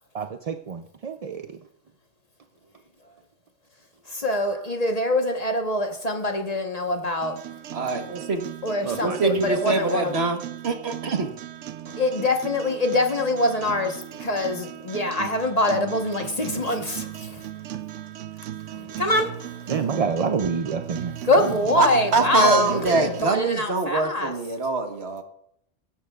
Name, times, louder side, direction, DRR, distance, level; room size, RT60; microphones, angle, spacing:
voice 1, 0.1-1.6 8.8-9.4 19.7-21.2, right 5 dB, 45° right, 0.5 m, -28 dB
voice 2, 4.1-7.4 8.6-10.2 11.9-17.4 18.7-19.4 21.2-24.3, left 1 dB, 35° left, 1.2 m, -24 dB
sound 1, 7.2-23.2, right 11 dB, 85° right, 0.9 m, -37 dB
voice 3, 7.7-8.5 9.0-11.3 21.8-25.2, right 3 dB, 65° right, 1.5 m, -24 dB
16.5 x 11.5 x 2.4 m
omnidirectional pair, 1.2 m